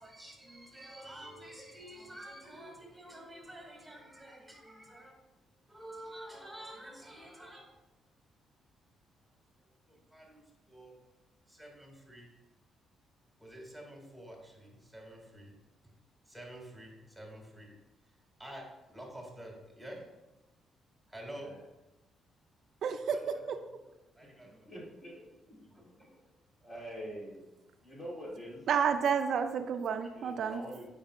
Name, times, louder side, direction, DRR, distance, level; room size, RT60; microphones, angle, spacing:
voice 1, 0.0-5.1 5.7-7.6 9.6-10.9 11.5-12.3 13.4-15.5 16.2-17.7 18.0-20.1 21.1-21.5 23.0-23.4 24.1-24.7 25.5-26.1 30.5-30.6, right 1 dB, ahead, -1 dB, 2.1 m, -49 dB
voice 2, 22.8-23.6 28.7-30.6, right 7 dB, 65° right, 8 dB, 0.4 m, -30 dB
voice 3, 24.4-25.2 26.6-27.5 27.8-28.6 30.1-30.9, equal, 30° left, -4 dB, 2.2 m, -45 dB
8.8 x 5.2 x 2.4 m, 1.0 s
cardioid pair, 90°, 0 cm